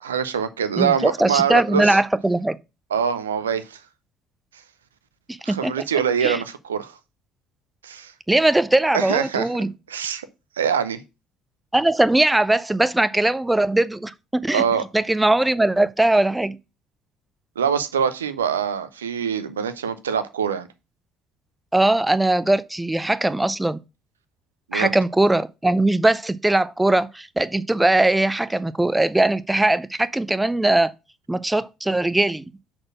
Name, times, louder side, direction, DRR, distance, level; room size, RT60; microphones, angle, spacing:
voice 1, 0.0-2.0 2.9-3.8 5.4-6.9 7.8-8.1 8.9-9.5 9.9-10.3 10.6-11.0 14.5-14.8 17.6-20.7 24.7-24.9, right 7 dB, 80° right, 0.5 m, -24 dB
voice 2, 0.8-2.6 5.3-5.7 6.2-6.4 8.3-9.7 11.7-14.6 14.9-16.6 21.7-23.8 24.7-30.9 31.3-32.4, right 2 dB, 10° right, 0.5 m, -20 dB
6.2 x 4.2 x 6.0 m
figure-of-eight pair, 50°, 0 cm